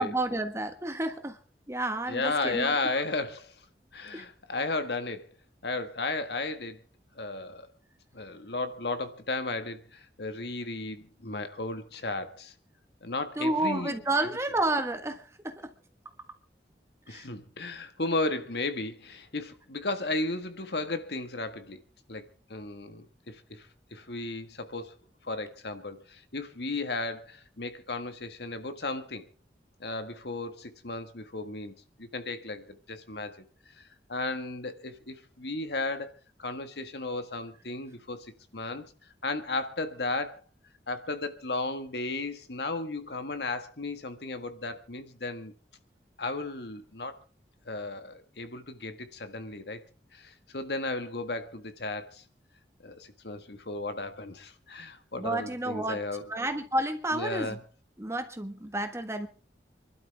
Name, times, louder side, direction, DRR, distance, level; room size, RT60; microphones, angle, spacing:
voice 1, 0.0-1.4 1.7-2.8 4.1-4.2 13.4-15.7 17.1-17.3 55.2-56.0 56.3-57.6 58.0-59.3, right 2 dB, 15° right, 1.4 m, -30 dB
voice 2, 2.1-3.6 3.9-5.3 5.6-6.8 7.2-7.7 8.1-12.5 13.0-13.9 17.1-21.8 22.1-25.0 25.2-29.3 29.8-33.5 33.8-36.1 36.4-38.9 39.2-40.4 40.9-45.5 46.2-47.2 47.7-49.8 50.1-52.2 52.8-56.3 57.1-57.6, left 2 dB, 70° left, 1.7 m, -34 dB
27.5 x 12.0 x 3.5 m
head